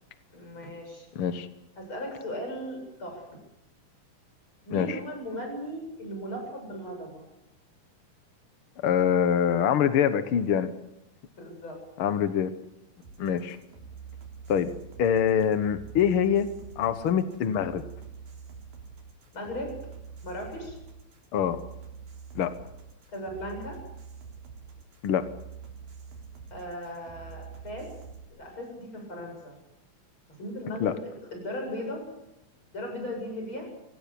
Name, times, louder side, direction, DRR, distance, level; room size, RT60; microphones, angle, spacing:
voice 1, 0.3-1.1 1.8-3.4 4.7-7.2 11.4-11.8 19.3-19.7 20.2-20.8 23.1-23.8 26.5-27.9 28.3-29.6 30.4-32.0 32.7-33.7, equal, 35° left, 2 dB, 8.8 m, -37 dB
voice 2, 1.1-1.5 4.7-5.0 8.8-10.7 12.0-12.5 13.2-13.6 14.5-14.7 15.0-16.5 16.8-17.8 21.3-21.6 22.3-22.5 25.0-25.3 30.8-30.9, left 8 dB, 70° left, 11 dB, 1.2 m, -24 dB
sound 1, 13.0-28.3, right 6 dB, 70° right, 5.4 m, -45 dB
25.0 x 18.0 x 8.7 m, 0.88 s
omnidirectional pair, 4.1 m